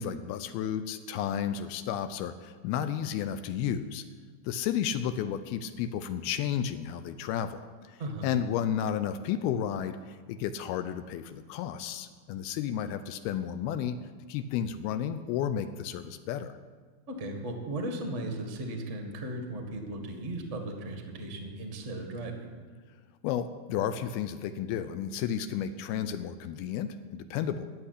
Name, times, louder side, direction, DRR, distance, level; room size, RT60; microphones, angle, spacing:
voice 1, 0.0-4.1 4.5-7.6 7.9-14.0 14.3-16.6 23.2-27.7, left 9 dB, 80° left, 11 dB, 2.3 m, -32 dB
voice 2, 17.1-22.5, right 1 dB, 85° right, 3 dB, 0.6 m, -36 dB
14.0 x 7.3 x 9.9 m, 1.5 s
omnidirectional pair, 4.9 m